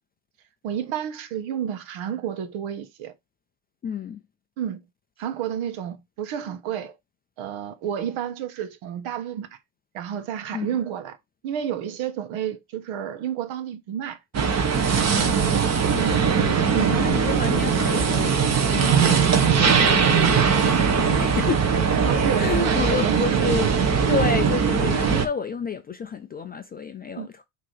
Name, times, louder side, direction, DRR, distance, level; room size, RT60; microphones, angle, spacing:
voice 1, 0.6-3.1 4.6-4.8 5.2-7.0 7.4-9.5 9.9-11.2 11.4-14.2 16.0-16.2 16.7-17.1 18.7-18.9 22.0-23.7 27.2-27.3, right 9 dB, 70° right, 1.3 m, -30 dB
voice 2, 3.8-4.2 10.5-10.8 15.1-15.4 16.4-18.4 18.7-21.7 22.4-27.4, left 5 dB, 20° left, 0.3 m, -30 dB
sound 1, 14.3-25.3, right 6 dB, 30° right, 1.3 m, -20 dB
6.2 x 3.0 x 5.6 m
cardioid pair, 140°, 48 cm